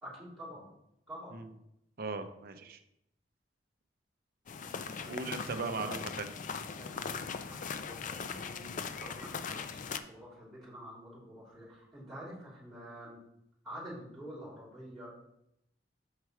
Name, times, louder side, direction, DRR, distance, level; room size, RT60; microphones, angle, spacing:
voice 1, 0.0-0.7 1.1-1.4 5.0-5.9 6.8-13.2 13.6-15.1, equal, ahead, -8 dB, 3.0 m, -48 dB
voice 2, 2.0-2.8 5.0-6.3, right 3 dB, 55° right, 8 dB, 0.6 m, -38 dB
sound 1, 4.5-10.0, left 5 dB, 45° left, 0.4 m, -40 dB
6.5 x 4.6 x 4.7 m, 0.80 s
head